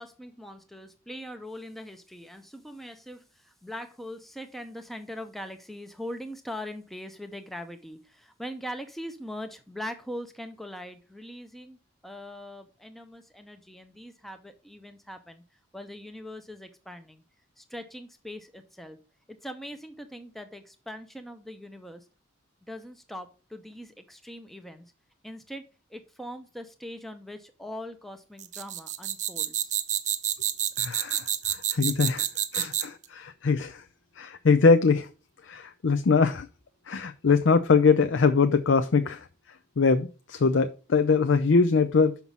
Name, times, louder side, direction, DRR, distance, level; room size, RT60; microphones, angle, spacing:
voice 1, 0.0-15.4 15.7-17.2 17.6-19.0 19.4-22.1 22.7-24.9 25.2-25.6 25.9-29.7, equal, ahead, 0.6 m, -41 dB
sound 1, 28.4-33.0, right 11 dB, 35° right, 0.6 m, -28 dB
voice 2, 30.8-32.3 32.5-33.8 34.2-35.1 35.4-36.5 36.9-39.3 39.8-42.2, left 4 dB, 60° left, 0.5 m, -22 dB
6.0 x 5.7 x 5.4 m
head